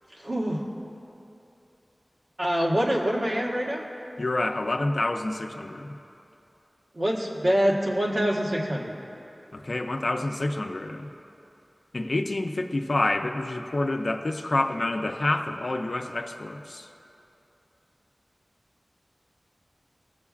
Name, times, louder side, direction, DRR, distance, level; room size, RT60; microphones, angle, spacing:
voice 1, 0.1-0.6 2.4-3.9 6.9-9.0, equal, 65° right, -4 dB, 1.3 m, -25 dB
voice 2, 4.2-6.0 9.5-11.1 11.9-16.9, left 2 dB, 65° left, 4 dB, 0.5 m, -28 dB
20.0 x 7.0 x 2.4 m, 2.9 s
wide cardioid pair, 50°, 0 cm